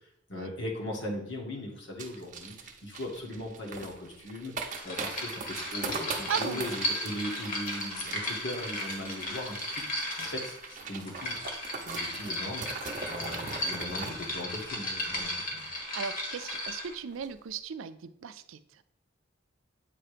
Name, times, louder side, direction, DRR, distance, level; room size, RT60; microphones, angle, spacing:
voice 1, 0.3-11.4 11.8-15.7, left 1 dB, 65° left, -1 dB, 1.5 m, -39 dB
sound 1, 2.0-15.8 16.1-16.2 16.4-16.7 17.1-17.3, right 4 dB, 40° right, 0.7 m, -41 dB
sound 2, 4.7-17.0, left 1 dB, 45° left, 1.4 m, -36 dB
voice 2, 6.3-6.6 15.7-18.8, right 7 dB, 85° right, 12 dB, 0.4 m, -37 dB
8.4 x 2.9 x 4.9 m, 0.77 s
head